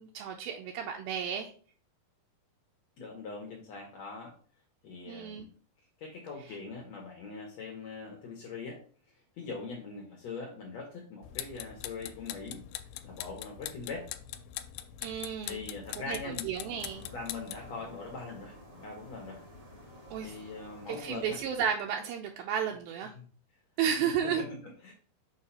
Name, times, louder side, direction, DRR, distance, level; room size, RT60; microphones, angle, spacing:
voice 1, 0.0-1.5 5.1-5.5 15.0-15.6 16.0-17.1 20.1-20.4 20.9-23.1 23.8-24.4, right 8 dB, 80° right, 1 dB, 2.5 m, -33 dB
voice 2, 3.0-4.3 4.8-5.5 6.0-8.8 9.4-14.1 15.5-16.5 17.1-19.4 20.2-21.4 23.1-23.2 24.0-24.9, left 4 dB, 65° left, -1 dB, 1.9 m, -42 dB
sound 1, 11.2-17.7, left 12 dB, 90° left, 2.4 m, -42 dB
sound 2, 16.6-21.7, left 1 dB, 45° right, 1.0 m, -51 dB
6.6 x 2.8 x 5.5 m, 0.42 s
omnidirectional pair, 4.3 m